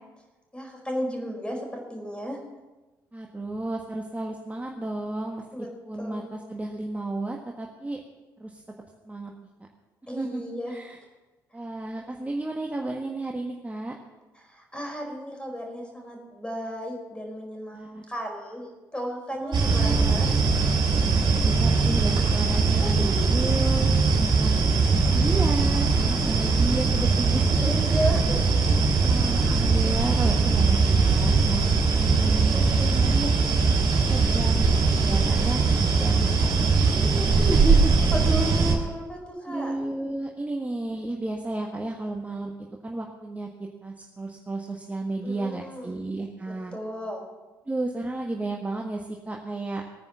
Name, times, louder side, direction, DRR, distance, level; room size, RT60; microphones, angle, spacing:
voice 1, 0.5-2.4 5.5-5.7 6.0-6.3 10.1-10.7 14.4-18.7 18.9-20.3 22.8-23.3 27.4-28.6 32.2-33.0 38.1-39.7 45.2-46.0 46.5-47.3, equal, 10° left, 1 dB, 4.7 m, -34 dB
voice 2, 3.1-5.4 5.9-8.0 8.4-8.6 9.0-9.3 10.1-10.4 10.7-11.0 11.5-13.9 17.7-18.0 19.3-20.2 21.3-24.8 25.1-27.6 28.7-33.3 34.1-37.9 39.5-42.5 42.8-46.7 47.7-50.0, right 2 dB, 15° right, 1 dB, 1.5 m, -33 dB
sound 1, 19.5-38.7, right 4 dB, 45° right, 3.4 m, -21 dB
18.5 x 9.6 x 6.0 m, 1.2 s
figure-of-eight pair, 45°, 11 cm